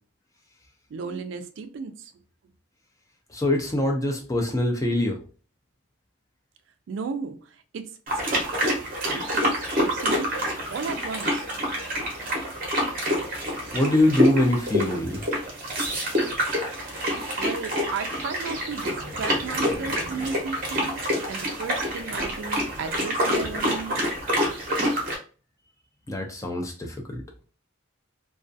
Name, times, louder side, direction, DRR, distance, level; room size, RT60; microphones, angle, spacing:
voice 1, 0.9-2.1 6.9-8.0 8.3-10.4 10.7-11.5 17.4-24.1, right 5 dB, 65° right, 0.3 m, -35 dB
voice 2, 3.3-5.2 13.7-15.2 26.1-27.2, left 1 dB, 15° left, 0.3 m, -24 dB
sound 1, 8.1-25.2, equal, 45° right, 0.7 m, -27 dB
2.3 x 2.3 x 2.5 m
head